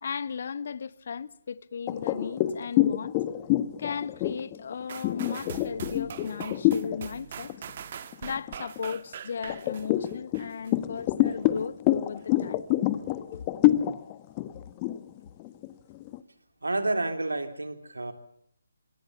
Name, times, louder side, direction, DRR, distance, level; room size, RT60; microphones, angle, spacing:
voice 1, 0.0-3.2 3.8-7.5 8.2-12.6, left 6 dB, 50° left, 1.1 m, -36 dB
sound 1, 1.9-7.0 7.4-7.7 8.1-8.9 9.5-16.2, left 14 dB, 25° left, 1.3 m, -27 dB
sound 2, 4.9-10.7 11.3-11.4, right 8 dB, 45° right, 1.7 m, -42 dB
voice 2, 16.6-18.1, right 2 dB, 85° right, 3.6 m, -29 dB
27.0 x 22.5 x 7.0 m
figure-of-eight pair, 150°, 0 cm